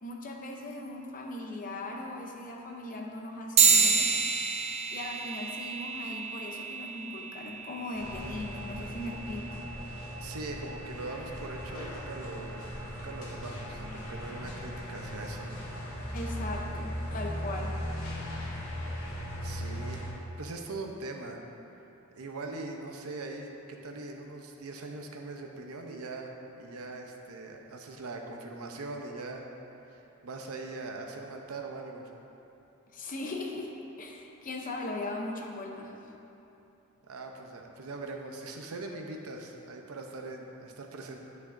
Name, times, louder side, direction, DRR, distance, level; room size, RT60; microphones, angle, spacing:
voice 1, 0.0-4.1 4.9-9.6 16.1-17.8 32.9-33.7 34.0-35.9, left 2 dB, 40° left, 1 dB, 0.7 m, -39 dB
sound 1, 3.6-13.4, right 5 dB, 30° right, 0.4 m, -31 dB
sound 2, 7.9-20.1, equal, 65° left, 1.0 m, -38 dB
voice 2, 10.2-15.6 19.4-20.0 20.4-21.4 22.2-29.5 29.9-32.1 37.0-41.2, right 2 dB, 80° right, 2 dB, 0.7 m, -41 dB
10.5 x 5.8 x 2.6 m, 2.9 s
head